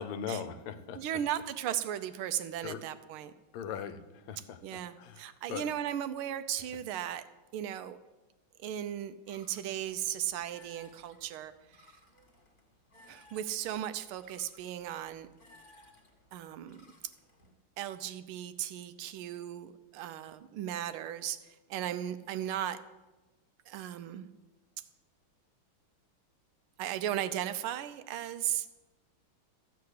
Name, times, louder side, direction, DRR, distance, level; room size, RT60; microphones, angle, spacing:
voice 1, 0.0-1.0 2.6-2.8 3.5-5.7, left 7 dB, 80° left, 11 dB, 1.6 m, -40 dB
voice 2, 0.9-3.3 4.6-7.2 7.5-8.0 8.6-11.9 13.1-15.3 16.3-16.8 17.8-22.8 23.7-24.3 26.8-28.7, right 11 dB, 80° right, 12 dB, 1.5 m, -36 dB
sound 1, 9.3-17.5, left 1 dB, 25° left, 1.8 m, -61 dB
14.0 x 4.8 x 8.1 m, 1.1 s
omnidirectional pair, 2.4 m